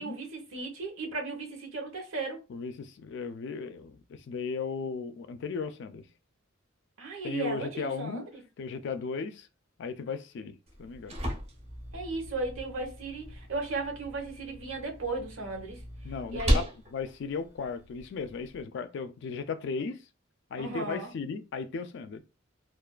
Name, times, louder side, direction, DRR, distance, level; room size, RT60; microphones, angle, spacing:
voice 1, 0.0-2.4 7.0-8.4 11.9-15.8 16.3-16.6 20.6-21.1, right 3 dB, 85° right, 0.9 m, -36 dB
voice 2, 2.5-6.1 7.2-8.2 8.6-9.5 9.8-11.2 16.0-16.7 16.9-20.0 20.5-22.2, left 5 dB, 60° left, 0.3 m, -36 dB
sound 1, 10.7-18.6, equal, 30° right, 0.6 m, -35 dB
2.3 x 2.3 x 2.2 m
head